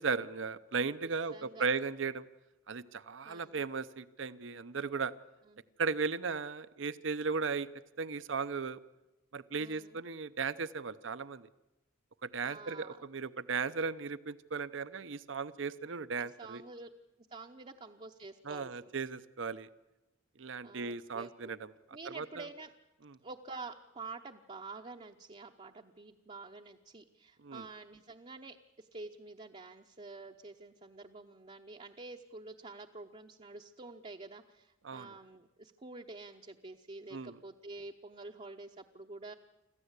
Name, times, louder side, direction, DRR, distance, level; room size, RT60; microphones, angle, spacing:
voice 1, 0.0-2.2 2.7-5.1 5.8-7.7 8.0-8.8 9.3-11.5 12.2-16.6 18.4-19.7 20.4-21.7 22.1-22.5 23.0-23.1 27.4-27.6 34.8-35.1 37.1-37.4, right 5 dB, 70° right, 14 dB, 0.7 m, -36 dB
voice 2, 1.0-1.7 3.2-3.6 5.5-5.6 9.6-10.0 12.4-13.0 16.2-16.9 17.3-18.9 20.6-21.5 21.9-22.7 23.2-39.3, right 3 dB, 35° right, 2 dB, 0.8 m, -48 dB
26.0 x 14.5 x 8.2 m, 1.0 s
head